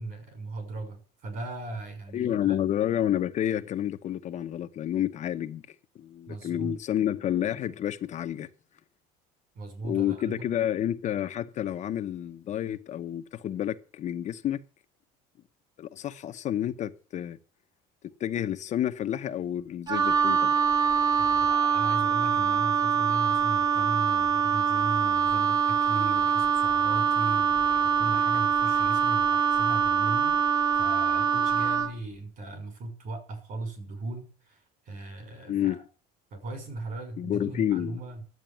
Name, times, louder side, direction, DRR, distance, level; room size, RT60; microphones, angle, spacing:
voice 1, 0.0-2.6 6.3-6.8 9.5-10.5 21.2-35.8 36.3-38.2, right 2 dB, 50° right, 5.9 m, -38 dB
voice 2, 2.1-5.6 6.0-8.5 9.8-14.6 15.8-17.4 18.2-20.6 35.5-35.8 37.2-38.2, left 11 dB, 40° left, 0.9 m, -29 dB
Wind instrument woodwind instrument, 19.9-32.0, right 7 dB, 20° right, 1.0 m, -24 dB
11.0 x 8.3 x 9.0 m
cardioid pair, 140°, 19 cm